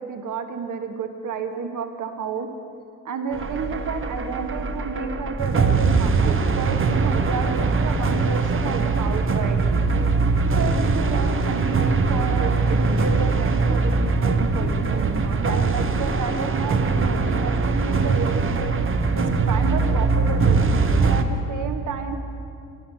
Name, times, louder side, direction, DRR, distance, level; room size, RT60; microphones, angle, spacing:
voice 1, 0.0-2.5 3.0-9.6 10.5-18.7 19.1-20.7 21.1-22.2, right 5 dB, 45° right, 7 dB, 1.4 m, -31 dB
sound 1, 3.3-21.2, right 4 dB, 30° right, 1.0 m, -21 dB
12.5 x 11.0 x 7.4 m, 2.5 s
hypercardioid pair, 55°, 44 cm